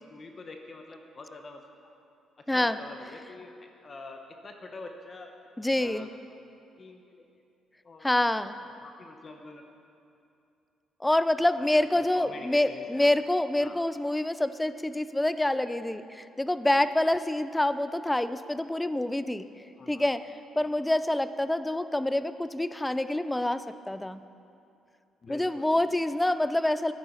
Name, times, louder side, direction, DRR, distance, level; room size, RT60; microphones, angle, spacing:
voice 1, 0.1-1.9 2.4-5.3 5.8-6.1 6.8-7.2 7.8-8.1 8.8-9.6 11.6-13.1 13.6-13.8 19.8-20.1 20.6-20.8 25.2-26.1, left 3 dB, 40° left, 4 dB, 0.8 m, -46 dB
voice 2, 2.5-2.8 5.6-6.1 8.0-8.6 11.0-19.5 19.9-24.2 25.3-26.9, left 1 dB, 10° left, 13 dB, 0.4 m, -27 dB
11.0 x 9.4 x 4.4 m, 2.6 s
cardioid pair, 90°, 0 cm